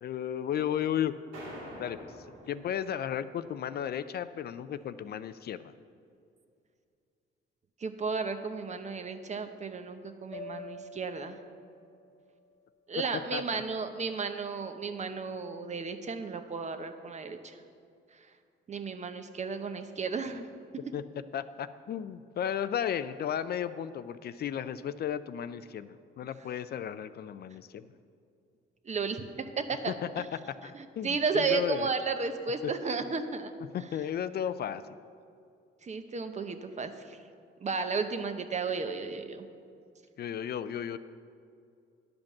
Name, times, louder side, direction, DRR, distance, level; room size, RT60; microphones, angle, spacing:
voice 1, 0.0-1.1 1.7-2.1 2.5-5.7 13.3-13.6 20.9-21.0 21.3-27.8 29.9-30.2 30.6-31.9 32.6-32.7 33.7-34.8 40.2-41.0, left 9 dB, 55° left, 13 dB, 0.4 m, -34 dB
sound 1, 1.3-3.3, right 1 dB, 90° right, 2.8 m, -46 dB
voice 2, 7.8-11.4 12.9-17.6 18.7-20.5 28.9-30.3 30.7-33.5 35.8-37.2 37.6-39.5, right 4 dB, 35° right, 8 dB, 0.8 m, -33 dB
sound 2, 10.3-14.6, left 2 dB, 15° left, 1.1 m, -49 dB
10.5 x 5.2 x 7.2 m, 2.4 s
cardioid pair, 90°, 20 cm